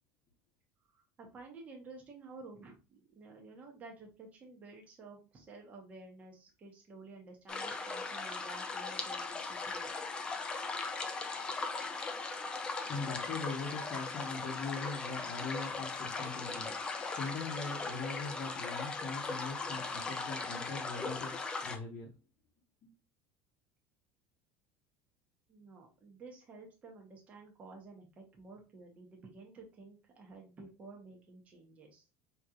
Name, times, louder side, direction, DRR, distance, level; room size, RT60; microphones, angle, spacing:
voice 1, 0.9-9.9 25.5-32.1, right 3 dB, 25° right, 1.0 m, -52 dB
sound 1, 7.5-21.8, left 4 dB, 15° left, 0.4 m, -39 dB
voice 2, 12.9-22.1 22.8-22.9, left 4 dB, 40° left, 0.9 m, -41 dB
5.0 x 2.9 x 2.4 m
cardioid pair, 165°, 6 cm